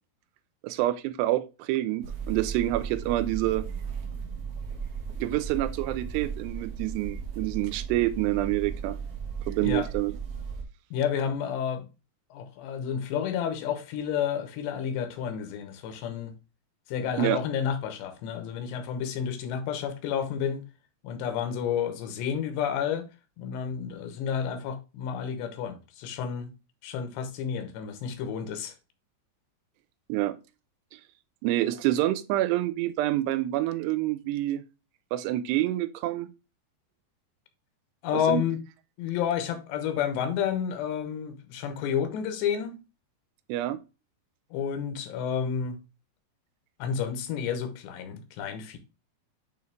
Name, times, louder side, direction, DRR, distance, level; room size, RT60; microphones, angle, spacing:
voice 1, 0.6-3.6 5.2-9.0 9.5-10.1 17.2-17.4 30.1-30.4 31.4-34.6 35.1-36.3 38.1-38.4 43.5-43.8, right 15 dB, 90° right, 2.7 m, -27 dB
sound 1, 2.0-10.6, right 6 dB, 60° right, 2.0 m, -36 dB
voice 2, 10.9-11.9 12.3-16.3 16.9-20.6 21.0-23.1 23.4-26.5 26.8-28.7 38.0-38.6 39.0-42.8 44.5-45.8 46.8-48.8, left 8 dB, 90° left, 3.2 m, -30 dB
9.3 x 3.2 x 3.4 m
omnidirectional pair, 4.8 m